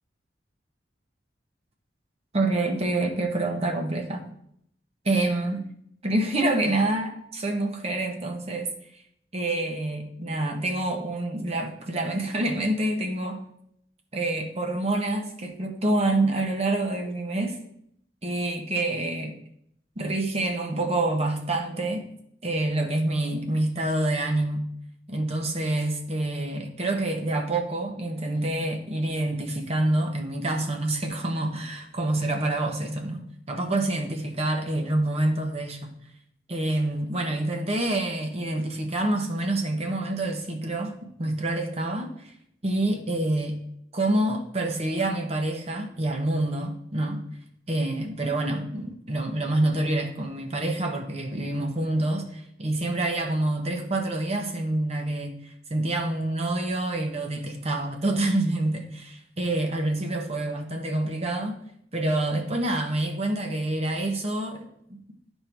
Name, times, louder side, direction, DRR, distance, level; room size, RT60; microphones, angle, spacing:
voice 1, 2.3-4.3 5.0-5.6 6.0-9.0 9.3-13.4 14.1-17.6 18.2-19.4 20.0-22.1 22.4-24.7 25.1-35.9 36.5-42.3 42.6-43.6 43.9-47.2 47.7-61.6 61.9-65.0, right 2 dB, 35° right, 3 dB, 0.9 m, -27 dB
12.0 x 4.4 x 3.4 m, 0.72 s
head